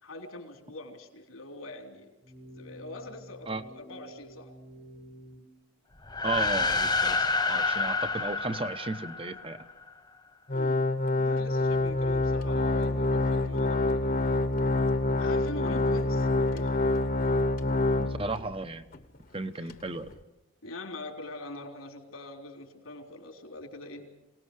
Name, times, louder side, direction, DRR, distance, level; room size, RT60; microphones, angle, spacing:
voice 1, 0.0-2.1 2.6-4.5 10.5-14.2 15.2-17.0 19.6-19.7 20.6-24.2, left 2 dB, 90° left, 3 dB, 3.8 m, -43 dB
sound 1, 2.2-5.4, equal, 50° right, 2.2 m, -49 dB
sound 2, 6.0-9.7, left 3 dB, 20° left, 1.1 m, -28 dB
voice 2, 6.2-9.6 18.0-18.8 19.3-20.1, right 3 dB, 25° right, 10 dB, 1.0 m, -34 dB
Organ, 10.5-18.5 18.9-19.0 19.7-19.8, left 2 dB, 45° left, 1.2 m, -26 dB
26.5 x 19.0 x 6.6 m, 0.99 s
head